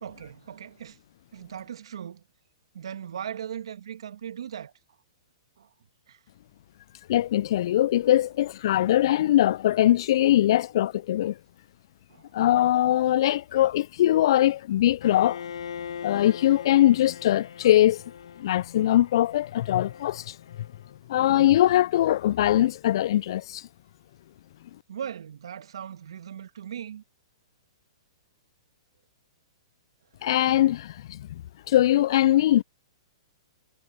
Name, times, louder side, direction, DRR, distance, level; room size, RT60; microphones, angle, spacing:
voice 1, 0.0-1.0 1.3-2.2 2.7-4.7 5.6-5.7 6.1-6.2 12.1-12.4 24.9-27.0, right 9 dB, 75° right, 2.0 m, -38 dB
voice 2, 7.1-11.4 12.3-15.4 16.0-18.0 18.4-20.4 21.1-23.6 30.2-31.4 31.7-32.6, left 13 dB, 60° left, 0.3 m, -21 dB
Bowed string instrument, 15.0-21.0, left 7 dB, 75° left, 1.3 m, -41 dB
hypercardioid pair, 125°, 3 cm